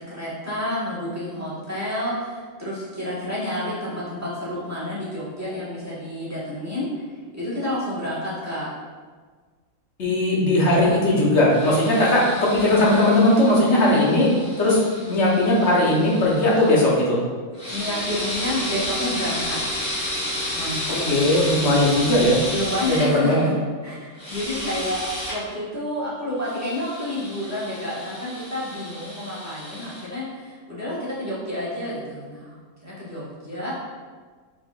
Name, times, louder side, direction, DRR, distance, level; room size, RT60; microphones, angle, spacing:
voice 1, 0.0-7.0 7.3-8.7 17.7-19.6 20.5-21.2 22.5-33.7, left 1 dB, 10° right, -8 dB, 1.3 m, -30 dB
voice 2, 10.0-14.3 14.6-14.8 15.1-17.2 21.1-22.4 22.9-23.4, left 1 dB, 55° left, -5 dB, 1.3 m, -18 dB
sound 1, 11.5-16.8 17.5-23.1 24.1-25.4 26.4-30.1, left 1 dB, 75° left, 1.8 m, -32 dB
4.8 x 4.4 x 2.4 m, 1.5 s
omnidirectional pair, 1.5 m